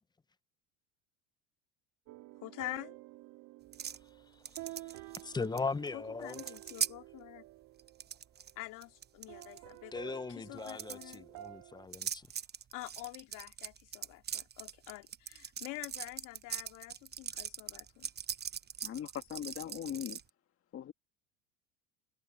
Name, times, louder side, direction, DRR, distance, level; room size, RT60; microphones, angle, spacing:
sound 1, 2.1-8.7 9.3-11.9, right 20 dB, 65° right, 4.3 m, -51 dB
voice 1, 2.4-3.0 5.9-7.4 8.6-11.3 12.7-18.1, left 20 dB, 65° left, 2.7 m, -46 dB
sound 2, 3.7-4.0 4.5-5.6 5.9-6.0 6.2-6.9 7.8-8.5 8.8-9.6 10.6-11.2 11.9-20.2, right 8 dB, 30° right, 1.0 m, -40 dB
voice 2, 4.3-6.4 9.9-12.3, left 4 dB, 10° left, 0.8 m, -39 dB
voice 3, 18.8-20.2 20.7-20.9, left 10 dB, 40° left, 1.9 m, -40 dB
supercardioid pair, 100°, 35 cm